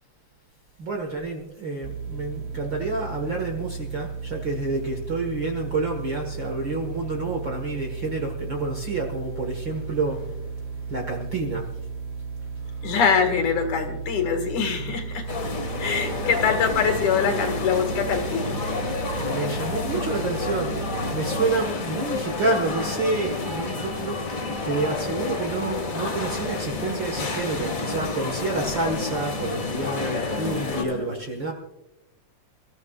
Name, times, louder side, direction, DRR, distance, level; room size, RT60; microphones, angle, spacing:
voice 1, 0.8-10.4 10.9-11.6 14.4-14.5 15.7-15.8 19.2-20.8 21.1-24.2 24.6-31.5, right 3 dB, 45° right, 2 dB, 1.6 m, -28 dB
sound 1, 1.8-21.5, right 5 dB, 80° right, 1.7 m, -35 dB
voice 2, 12.8-15.5 15.8-18.6 30.4-31.1, left 6 dB, 65° left, 4 dB, 3.1 m, -24 dB
sound 2, 15.3-30.8, left 3 dB, 35° left, 1.6 m, -30 dB
28.0 x 14.5 x 2.4 m, 0.97 s
omnidirectional pair, 3.8 m